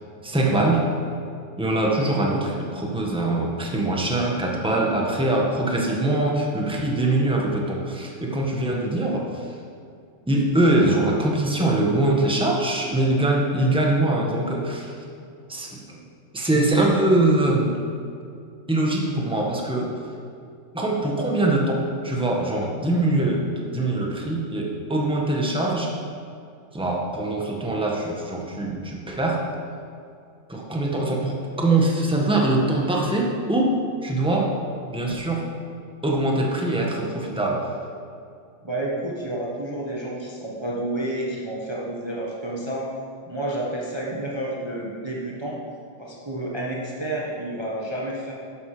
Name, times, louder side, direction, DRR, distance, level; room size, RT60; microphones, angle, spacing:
voice 1, 0.2-0.8 1.6-9.5 10.3-14.9 15.5-16.0 16.3-17.8 18.7-19.9 20.7-25.9 26.7-29.4 30.5-33.7 34.0-34.5 34.9-35.4 36.0-37.7, right 2 dB, 5° right, -1 dB, 1.6 m, -23 dB
voice 2, 38.6-42.9 43.3-45.6 46.0-48.3, right 1 dB, 20° right, -4 dB, 1.5 m, -30 dB
12.0 x 10.5 x 5.1 m, 2.4 s
omnidirectional pair, 1.3 m